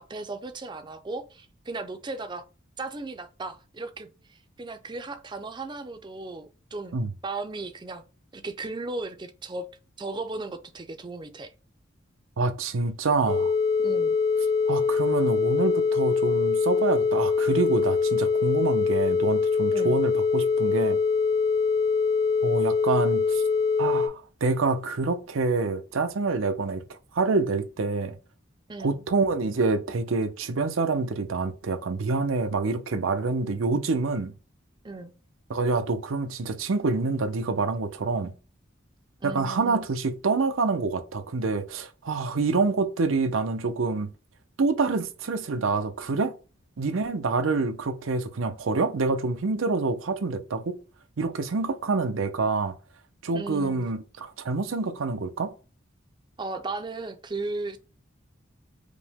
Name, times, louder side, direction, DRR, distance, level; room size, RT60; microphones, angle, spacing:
voice 1, 0.0-2.5 2.8-8.0 8.3-9.7 10.0-11.5 13.8-14.2 19.7-19.9 28.7-29.0 34.8-35.1 39.2-39.9 53.3-53.9 56.4-57.8, right 3 dB, 25° right, 0.4 m, -36 dB
voice 2, 12.4-13.5 14.7-21.0 22.4-23.4 23.8-28.2 28.8-34.3 35.5-38.3 39.2-44.1 44.6-46.3 46.8-50.8 51.2-52.8 53.2-55.5, right 3 dB, 90° right, 0.6 m, -27 dB
sound 1, 13.3-24.1, left 5 dB, 65° left, 1.1 m, -23 dB
5.0 x 2.1 x 3.5 m
head